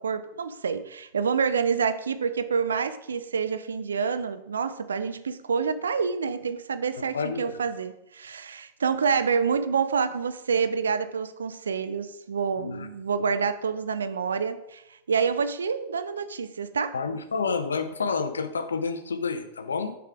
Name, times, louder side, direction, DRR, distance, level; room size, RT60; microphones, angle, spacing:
voice 1, 0.0-14.8 15.1-16.9, right 6 dB, 70° right, 12 dB, 0.4 m, -27 dB
voice 2, 7.0-7.6 12.6-12.9 16.9-19.9, left 5 dB, 70° left, 9 dB, 0.7 m, -29 dB
6.5 x 4.9 x 4.8 m, 0.84 s
figure-of-eight pair, 90°, 0 cm